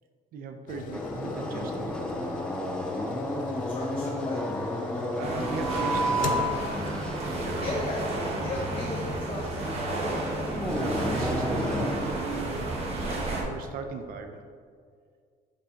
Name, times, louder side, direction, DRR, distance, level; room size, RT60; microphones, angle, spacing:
voice 1, 0.3-2.3 5.2-6.6 7.3-7.7 9.2-9.3 10.7-14.4, right 4 dB, 60° right, 6 dB, 0.6 m, -38 dB
sound 1, 0.7-7.7 8.2-8.3, left 7 dB, 55° left, 0.5 m, -40 dB
sound 2, 0.9-11.9, equal, 5° left, 0.5 m, -32 dB
voice 2, 3.7-4.4 5.7-5.9 7.6-9.8, left 2 dB, 35° left, -3 dB, 0.9 m, -36 dB
sound 3, 5.2-13.4, right 2 dB, 40° right, 1.3 m, -31 dB
10.0 x 5.4 x 2.9 m, 2.1 s
cardioid pair, 150°, 16 cm